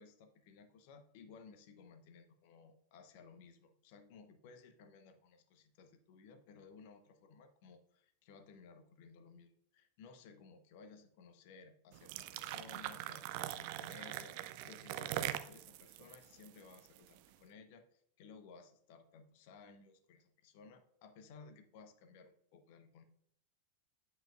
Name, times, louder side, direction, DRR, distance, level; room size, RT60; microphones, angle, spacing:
voice 1, 0.0-14.4 14.6-23.0, left 5 dB, 50° left, 9 dB, 1.0 m, -58 dB
sound 1, 11.9-17.2, right 13 dB, 45° right, 0.5 m, -42 dB
8.9 x 7.8 x 2.4 m, 0.70 s
figure-of-eight pair, 90°, 0 cm